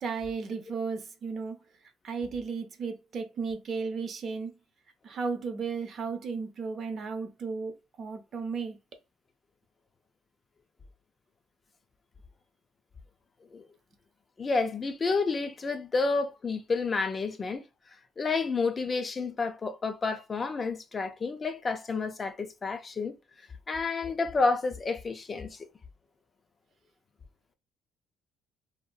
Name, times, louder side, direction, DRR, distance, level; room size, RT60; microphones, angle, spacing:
voice 1, 0.0-1.6 2.0-4.6 5.0-8.8, right 5 dB, 45° right, 0.6 m, -34 dB
voice 2, 14.4-17.6 18.2-23.1 23.7-25.6, left 4 dB, 25° left, 0.3 m, -30 dB
2.7 x 2.4 x 2.2 m
cardioid pair, 120°, 0 cm